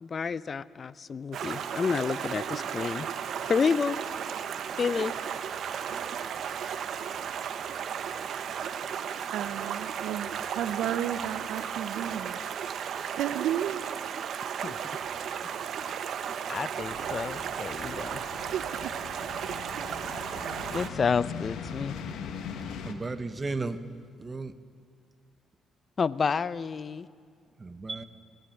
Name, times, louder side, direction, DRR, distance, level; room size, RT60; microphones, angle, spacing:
voice 1, 0.0-3.1 3.4-4.0 4.8-5.1 14.6-14.8 15.8-15.9 16.5-18.2 20.7-22.0 26.0-27.1, left 5 dB, 40° left, 18 dB, 0.5 m, -29 dB
Stream, 1.3-20.9, right 8 dB, 65° right, 1.0 m, -35 dB
voice 2, 9.3-10.3 10.6-12.4 13.2-13.8 18.5-18.9, right 11 dB, 85° right, 16 dB, 0.6 m, -32 dB
sound 1, 16.8-22.9, left 6 dB, 80° left, 1.5 m, -41 dB
voice 3, 22.9-23.8 24.2-24.5 27.6-28.0, right 3 dB, 25° right, 11 dB, 1.0 m, -34 dB
20.0 x 15.0 x 9.1 m, 2.1 s
cardioid pair, 90°, 0 cm